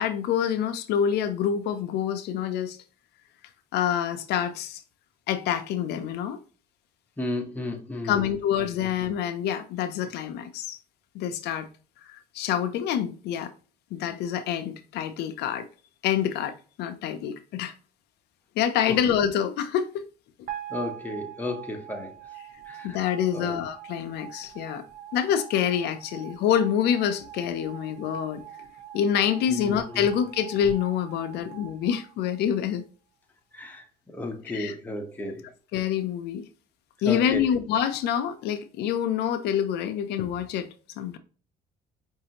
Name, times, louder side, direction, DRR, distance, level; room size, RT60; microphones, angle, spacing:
voice 1, 0.0-2.8 3.7-4.8 5.3-6.4 8.0-10.8 11.1-11.7 12.0-13.5 13.9-15.7 16.0-17.7 18.6-20.0 22.8-24.8 25.1-28.4 28.9-32.8 34.5-34.7 35.7-36.4 37.0-40.7 41.0-41.2, left 9 dB, 75° left, 0.5 m, -26 dB
voice 2, 7.2-8.4 8.8-8.9 18.9-19.0 20.7-22.1 22.7-23.1 23.3-23.6 29.5-30.1 33.5-35.5 37.0-37.5, left 2 dB, 10° left, 0.9 m, -34 dB
sound 1, 20.5-32.7, right 11 dB, 55° right, 0.9 m, -43 dB
4.9 x 2.7 x 2.8 m
cardioid pair, 110°, 17 cm